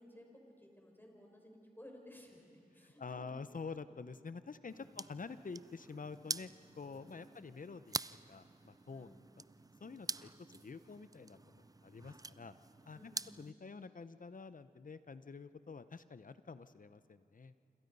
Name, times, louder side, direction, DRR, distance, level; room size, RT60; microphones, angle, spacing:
voice 1, 0.0-3.3 4.9-5.0 6.9-7.3 8.9-9.2 10.0-10.3 12.9-13.5, left 1 dB, 15° left, 1 dB, 5.3 m, -58 dB
voice 2, 2.8-8.0 8.3-9.1 9.8-10.3 10.6-12.5 12.9-13.1 13.4-17.6, left 4 dB, 60° left, 13 dB, 0.8 m, -48 dB
sound 1, 4.7-13.5, right 3 dB, 25° right, 0.4 m, -47 dB
28.5 x 26.5 x 5.5 m, 2.9 s
wide cardioid pair, 60°, 16 cm